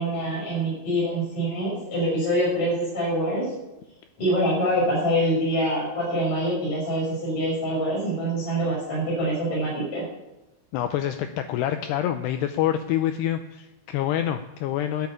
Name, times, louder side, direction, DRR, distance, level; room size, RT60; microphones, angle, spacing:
voice 1, 0.0-3.4 4.2-10.0, equal, 30° left, -8 dB, 6.9 m, -25 dB
voice 2, 10.7-15.1, left 11 dB, 85° left, 8 dB, 2.4 m, -26 dB
12.5 x 7.0 x 8.4 m, 0.97 s
omnidirectional pair, 5.4 m